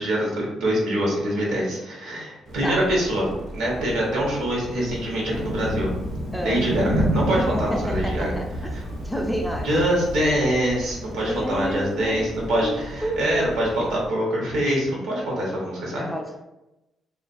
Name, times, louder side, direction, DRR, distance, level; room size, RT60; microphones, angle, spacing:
voice 1, 0.0-3.3 3.5-5.9 6.4-8.3 9.6-16.1, right 1 dB, 85° right, -3 dB, 0.9 m, -24 dB
sound 1, 2.4-14.1, right 1 dB, 60° right, 0.6 m, -39 dB
voice 2, 2.6-2.9 6.3-6.7 7.3-8.5 9.0-10.0 11.2-12.3 12.6-13.5 13.8-14.0 15.9-16.4, equal, 5° left, 1 dB, 0.3 m, -30 dB
Thunder, 5.3-10.3, equal, 80° left, 0.4 m, -28 dB
2.3 x 2.2 x 2.5 m, 0.97 s
cardioid pair, 90°, 0 cm